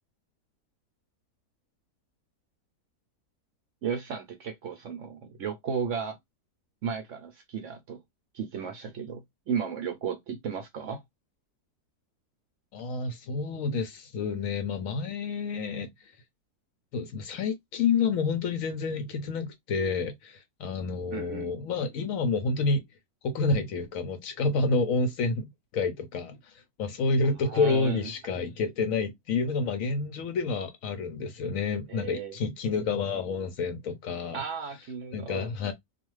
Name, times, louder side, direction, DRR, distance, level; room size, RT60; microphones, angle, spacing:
voice 1, 3.8-6.2 6.8-8.0 8.3-11.0 21.1-21.6 27.4-28.1 31.9-32.4 34.3-35.5, right 6 dB, 65° right, 0.8 m, -34 dB
voice 2, 12.7-15.9 16.9-22.8 23.2-26.5 26.8-34.4 35.1-35.7, left 4 dB, 70° left, 0.9 m, -29 dB
2.4 x 2.3 x 3.0 m
omnidirectional pair, 1.7 m